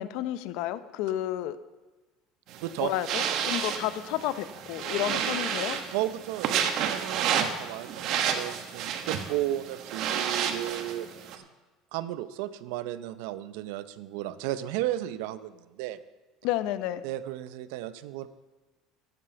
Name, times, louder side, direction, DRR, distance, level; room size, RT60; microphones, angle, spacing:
voice 1, 0.0-1.6 2.8-5.8 16.4-17.0, left 13 dB, 65° left, 14 dB, 0.6 m, -31 dB
sound 1, 2.5-11.4, right 8 dB, 50° right, 1.1 m, -31 dB
voice 2, 5.9-11.4 11.9-16.0 17.0-18.3, right 14 dB, 80° right, 14 dB, 0.7 m, -34 dB
13.0 x 8.2 x 7.0 m, 1.2 s
cardioid pair, 170°, 0 cm